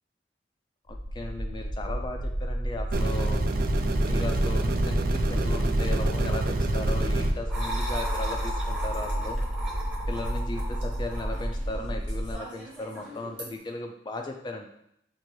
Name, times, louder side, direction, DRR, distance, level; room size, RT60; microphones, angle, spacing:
sound 1, 0.9-12.3, equal, 60° left, 0.8 m, -31 dB
voice 1, 0.9-3.4 4.1-9.4 10.1-14.7, left 2 dB, 25° left, 3 dB, 0.4 m, -37 dB
sound 2, 2.9-7.3, right 2 dB, 55° right, 0.4 m, -26 dB
sound 3, 7.5-13.5, right 1 dB, 5° right, 0.8 m, -38 dB
5.2 x 2.5 x 3.1 m, 0.75 s
head